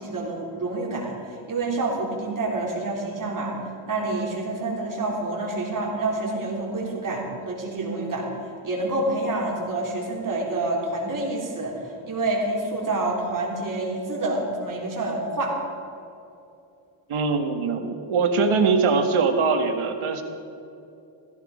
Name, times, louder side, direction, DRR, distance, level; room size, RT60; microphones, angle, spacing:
voice 1, 0.0-3.6 3.9-8.3 8.6-15.6, right 2 dB, 40° right, -3 dB, 3.7 m, -28 dB
voice 2, 17.1-20.2, right 4 dB, 75° right, 5 dB, 1.8 m, -22 dB
15.5 x 15.5 x 5.1 m, 2.7 s
wide cardioid pair, 145°, 49 cm